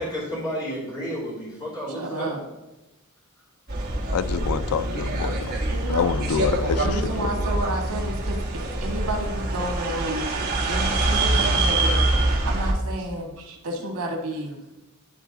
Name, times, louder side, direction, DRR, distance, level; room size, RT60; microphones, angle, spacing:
voice 1, 0.0-2.3 8.8-8.9, equal, 15° left, -7 dB, 2.9 m, -31 dB
voice 2, 1.9-2.4 5.7-6.1 6.7-8.4 8.8-10.3 10.7-14.6, right 1 dB, 90° right, 1 dB, 1.6 m, -31 dB
sound 1, 3.7-12.7, right 2 dB, 45° right, 1.3 m, -25 dB
voice 3, 4.1-7.3, left 6 dB, 80° left, 12 dB, 0.4 m, -27 dB
10.5 x 3.9 x 3.9 m, 0.99 s
head